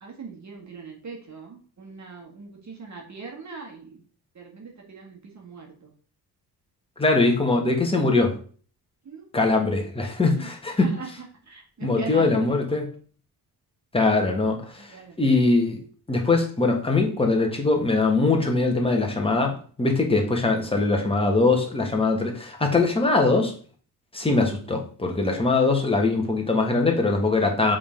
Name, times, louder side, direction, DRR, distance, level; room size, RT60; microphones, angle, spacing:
voice 1, 0.0-4.0 4.3-5.9 9.0-9.2 10.4-10.5 10.8-11.1 11.5-12.6 14.8-15.2, right 5 dB, 45° right, 0 dB, 1.6 m, -40 dB
voice 2, 7.0-8.3 9.3-10.9 11.8-12.9 13.9-15.8 16.1-23.5 24.1-27.8, left 3 dB, 15° left, 2 dB, 1.5 m, -22 dB
6.9 x 3.8 x 5.1 m, 0.44 s
cardioid pair, 125°, 40 cm